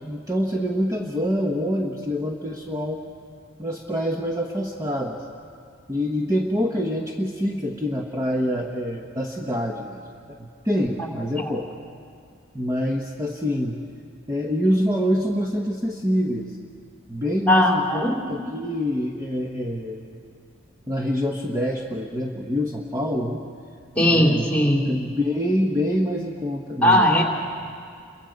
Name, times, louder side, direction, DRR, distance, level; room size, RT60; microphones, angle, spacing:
voice 1, 0.0-3.0 3.6-5.2 5.9-10.0 10.3-11.7 12.5-13.8 14.3-16.6 17.1-20.2 20.9-23.4 24.0-24.5 24.8-27.1, equal, 15° right, 0 dB, 1.1 m, -26 dB
voice 2, 17.5-18.2 24.0-24.8 26.8-27.2, left 1 dB, 5° left, 0 dB, 2.8 m, -18 dB
29.5 x 23.0 x 5.2 m, 2.2 s
head